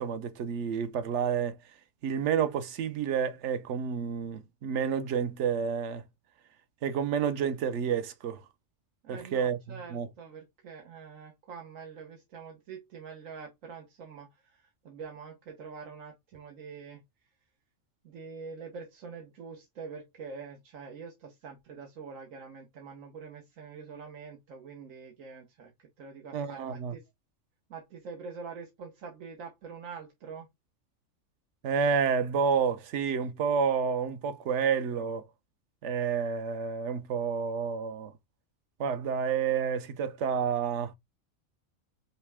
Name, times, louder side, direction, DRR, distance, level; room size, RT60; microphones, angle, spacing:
voice 1, 0.0-1.6 2.0-6.0 6.8-8.4 9.1-10.1 26.3-26.9 31.6-35.2 35.8-38.1 38.8-40.9, right 7 dB, 65° right, 1.0 m, -29 dB
voice 2, 9.0-17.0 18.0-27.1 27.7-30.5, right 5 dB, 85° right, 1.3 m, -45 dB
5.6 x 2.1 x 3.4 m
omnidirectional pair, 1.3 m